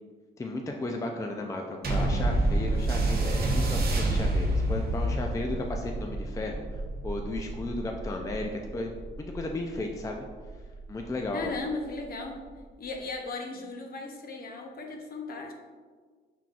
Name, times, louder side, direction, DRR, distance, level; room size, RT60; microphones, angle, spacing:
voice 1, 0.4-8.9 9.2-10.3 10.9-11.5, left 2 dB, 15° left, 2 dB, 0.4 m, -34 dB
sound 1, 1.8-10.6 11.4-11.5, right 1 dB, 50° right, 0.9 m, -28 dB
voice 2, 11.3-12.4 12.8-15.5, left 3 dB, 50° left, 2 dB, 0.8 m, -36 dB
5.7 x 3.7 x 2.4 m, 1.5 s
cardioid pair, 90°, 20 cm